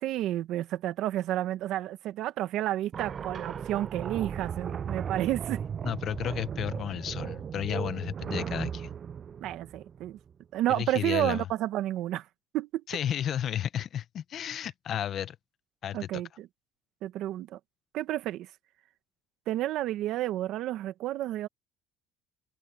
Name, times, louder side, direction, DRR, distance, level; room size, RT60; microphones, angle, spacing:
voice 1, 0.0-5.6 9.4-10.2 10.5-12.3 12.5-12.8 15.9-16.5 17.0-17.6 17.9-18.5 19.5-21.5, right 14 dB, 65° right, 1.7 m, -31 dB
sound 1, 2.9-10.3, right 7 dB, 40° right, 0.5 m, -36 dB
voice 2, 5.8-8.9 10.7-11.5 12.9-15.4 15.8-16.2, left 10 dB, 50° left, 0.9 m, -33 dB
cardioid pair, 110°, 0 cm